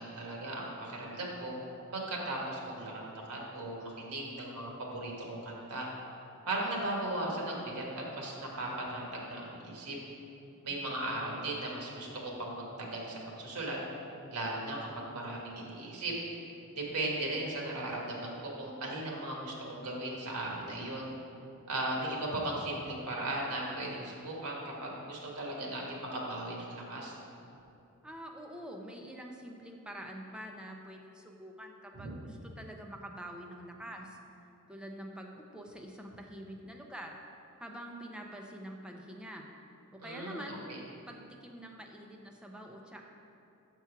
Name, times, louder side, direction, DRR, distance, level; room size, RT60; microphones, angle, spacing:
voice 1, 0.0-1.5 1.9-5.9 6.5-7.8 8.1-10.0 10.6-12.1 12.4-13.8 14.3-16.1 16.7-21.1 21.7-27.1 31.9-32.1 40.0-40.8, right 1 dB, 85° right, -2 dB, 1.6 m, -37 dB
voice 2, 28.0-34.2 34.7-37.2 37.6-39.5 39.9-40.6 41.1-43.0, equal, 5° right, 1 dB, 0.6 m, -46 dB
7.0 x 4.5 x 5.7 m, 2.7 s
head